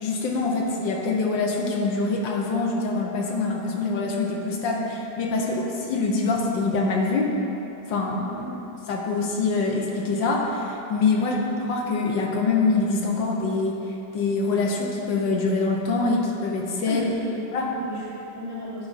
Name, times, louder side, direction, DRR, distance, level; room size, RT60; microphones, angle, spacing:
voice 1, 0.0-5.6 5.9-7.4 7.9-8.4 8.9-11.4 11.7-13.8 14.1-17.0 17.5-17.7, left 3 dB, 75° left, -1 dB, 1.5 m, -24 dB
voice 2, 16.9-18.9, equal, 20° right, -7 dB, 0.6 m, -34 dB
10.5 x 4.6 x 4.0 m, 3.0 s
omnidirectional pair, 2.1 m